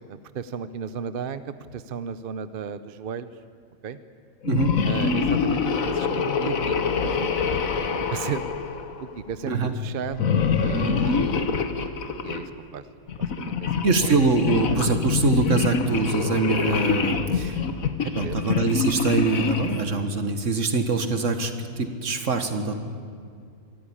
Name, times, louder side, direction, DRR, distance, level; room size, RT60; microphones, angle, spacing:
voice 1, 0.0-3.3 3.8-4.0 4.8-6.7 7.0-7.3 7.8-8.4 9.0-11.3 12.1-12.8 13.2-14.1 18.2-18.4, right 7 dB, 50° right, 13 dB, 0.8 m, -35 dB
sound 1, 4.4-9.3 10.1-12.5 13.1-19.9, left 5 dB, 80° left, 1.6 m, -25 dB
voice 2, 13.8-17.6 18.2-22.7, right 3 dB, 65° right, 8 dB, 1.9 m, -24 dB
23.5 x 13.5 x 10.0 m, 2.2 s
omnidirectional pair, 1.4 m